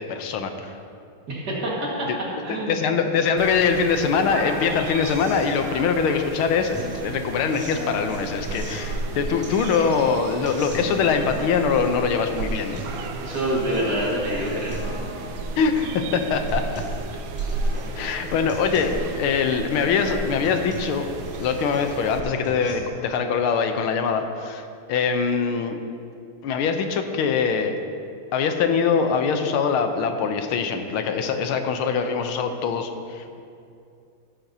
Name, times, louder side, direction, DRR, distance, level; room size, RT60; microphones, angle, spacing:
voice 1, 0.1-0.7 2.1-2.2 2.7-13.1 15.6-16.8 17.9-18.9 19.2-21.1 21.4-25.8 26.4-27.7 28.3-33.4, left 6 dB, 80° left, 6 dB, 1.5 m, -23 dB
voice 2, 1.3-1.7 2.0-2.1 2.4-2.8 13.2-15.0, right 1 dB, 50° right, -4 dB, 2.2 m, -26 dB
sound 1, 3.4-22.2, right 3 dB, 75° right, 1.5 m, -34 dB
sound 2, 6.7-22.7, right 2 dB, 5° right, 2.4 m, -38 dB
13.5 x 10.0 x 2.7 m, 2.4 s
omnidirectional pair, 2.4 m